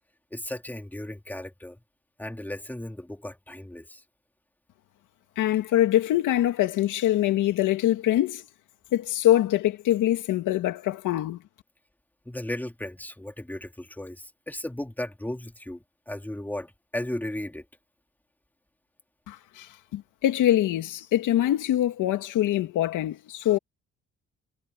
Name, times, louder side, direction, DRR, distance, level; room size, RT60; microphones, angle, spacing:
voice 1, 0.3-1.8 2.2-4.0 12.3-17.6, left 1 dB, 5° left, 2.6 m, -35 dB
voice 2, 5.4-8.4 8.9-11.4 19.3-23.6, left 13 dB, 85° left, 2.5 m, -24 dB
cardioid pair, 90°, 30 cm